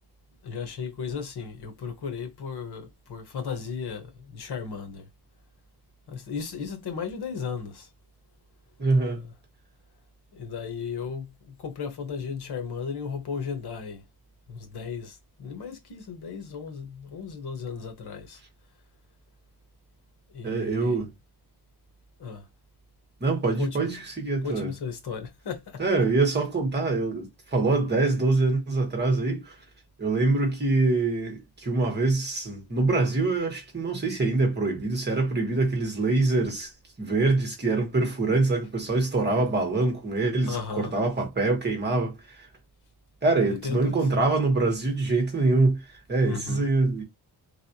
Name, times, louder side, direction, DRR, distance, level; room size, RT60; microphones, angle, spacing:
voice 1, 0.4-5.1 6.1-7.9 9.2-9.3 10.3-14.0 14.5-18.4 20.3-21.0 22.2-22.5 23.5-23.9 24.4-25.8 40.5-40.9 43.6-44.1 46.2-46.7, left 6 dB, 90° left, 1.1 m, -35 dB
voice 2, 8.8-9.2 20.4-21.1 23.2-24.7 25.8-29.6 30.0-36.7 37.0-42.5 43.2-45.8 46.1-47.0, right 3 dB, 25° right, 1.1 m, -24 dB
3.4 x 2.5 x 2.7 m
wide cardioid pair, 180°, 38 cm